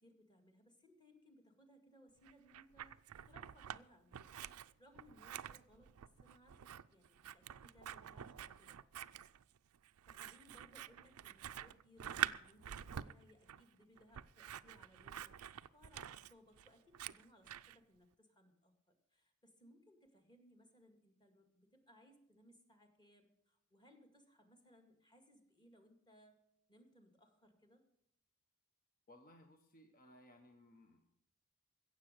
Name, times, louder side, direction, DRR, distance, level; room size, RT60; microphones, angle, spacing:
voice 1, 0.0-2.9 3.3-4.3 4.6-5.9 6.2-8.8 10.1-26.4 26.7-27.8, equal, 20° left, 5 dB, 2.1 m, -66 dB
Scissors, 2.3-3.8 4.1-17.8, right 10 dB, 70° right, 0.5 m, -47 dB
voice 2, 29.1-31.2, left 1 dB, 40° left, 5 dB, 1.1 m, -62 dB
16.0 x 7.5 x 6.6 m, 0.74 s
head